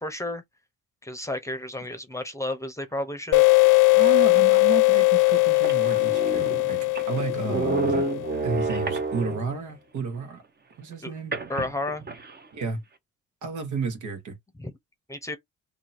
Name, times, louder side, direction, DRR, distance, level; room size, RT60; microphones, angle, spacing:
voice 1, 0.0-0.4 1.0-3.4 11.0-11.1 11.5-12.0 14.6-14.7 15.1-15.4, left 1 dB, 10° left, 0.8 m, -32 dB
sound 1, 3.3-8.6, left 25 dB, 85° left, 0.5 m, -20 dB
voice 2, 3.9-6.8 7.1-8.1 8.4-10.4 10.8-11.3 12.5-12.8 13.4-14.3, right 4 dB, 75° right, 1.5 m, -32 dB
sound 2, 4.6-4.7 5.3-5.4 5.6-9.6 11.3-12.4, right 3 dB, 35° right, 1.0 m, -30 dB
2.8 x 2.8 x 4.2 m
cardioid pair, 90°, 30 cm